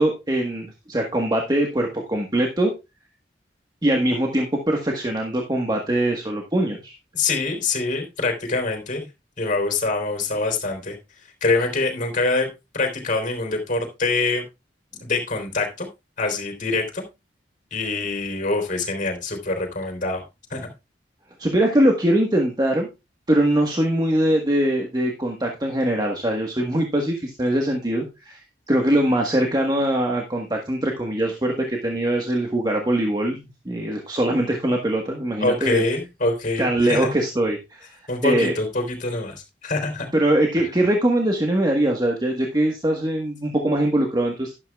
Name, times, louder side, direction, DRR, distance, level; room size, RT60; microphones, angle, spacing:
voice 1, 0.0-2.7 3.8-6.9 21.4-22.9 23.3-28.4 28.7-33.4 33.6-35.8 36.6-38.5 40.1-44.5, right 1 dB, 25° right, 1 dB, 1.4 m, -22 dB
voice 2, 7.1-9.1 9.4-11.0 11.4-12.5 12.7-14.4 15.0-15.9 16.2-17.1 17.7-20.2 20.5-20.7 35.4-37.1 38.1-40.1, left 3 dB, 45° left, 4 dB, 3.6 m, -24 dB
12.0 x 11.0 x 2.4 m, 0.24 s
head